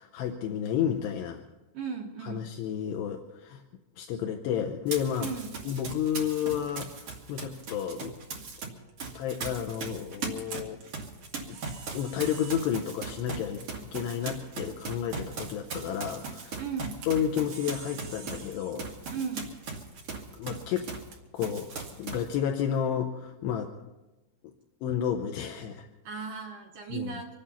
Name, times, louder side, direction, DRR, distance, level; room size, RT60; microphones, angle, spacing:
voice 1, 0.0-1.4 2.2-3.6 4.0-5.3 5.7-8.1 9.1-10.8 11.5-11.6 11.9-16.6 17.1-18.9 20.3-20.9 21.3-23.8 24.8-25.9 26.9-27.1, left 9 dB, 75° left, 4 dB, 2.7 m, -31 dB
voice 2, 1.7-2.5 5.2-5.5 16.6-17.0 19.1-19.5 26.0-27.3, right 6 dB, 75° right, 0 dB, 2.0 m, -36 dB
Run, 4.9-8.7 9.0-21.1 21.4-22.3, right 4 dB, 45° right, 2.2 m, -39 dB
Camera, 7.3-22.8, right 6 dB, 60° right, 3.6 m, -52 dB
26.0 x 8.9 x 5.6 m, 1.1 s
omnidirectional pair, 5.4 m